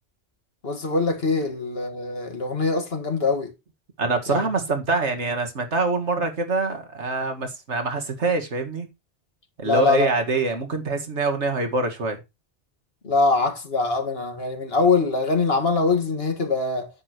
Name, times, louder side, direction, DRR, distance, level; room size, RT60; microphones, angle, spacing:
voice 1, 0.6-3.5 4.3-4.4 9.6-10.2 13.0-16.9, left 3 dB, 60° left, 2.0 m, -23 dB
voice 2, 4.0-8.9 9.6-12.2, right 3 dB, 85° right, 2.1 m, -25 dB
9.7 x 8.5 x 3.0 m
omnidirectional pair, 1.2 m